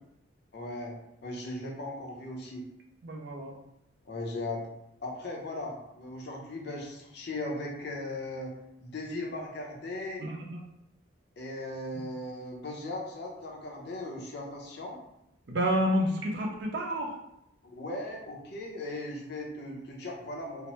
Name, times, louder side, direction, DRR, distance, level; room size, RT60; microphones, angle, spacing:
voice 1, 0.5-2.7 4.0-4.7 5.0-8.6 8.8-10.2 11.4-15.0 17.6-20.7, left 1 dB, 55° left, -1 dB, 0.6 m, -38 dB
voice 2, 3.0-3.5 10.2-10.6 12.0-12.1 15.5-17.1, equal, 60° right, 1 dB, 0.5 m, -29 dB
2.8 x 2.1 x 3.0 m, 0.81 s
head